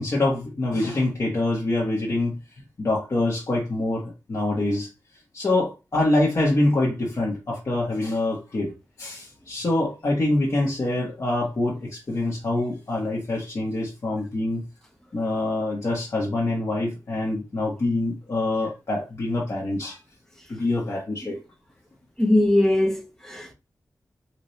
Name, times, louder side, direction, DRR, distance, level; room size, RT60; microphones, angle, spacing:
voice 1, 0.0-2.4 2.8-4.9 5.3-8.7 9.0-14.6 15.1-20.0 20.5-21.4, left 2 dB, 50° left, 1.2 m, -25 dB
voice 2, 22.2-23.5, left 1 dB, 5° left, 1.0 m, -21 dB
4.1 x 2.6 x 3.2 m
wide cardioid pair, 115°, 7 cm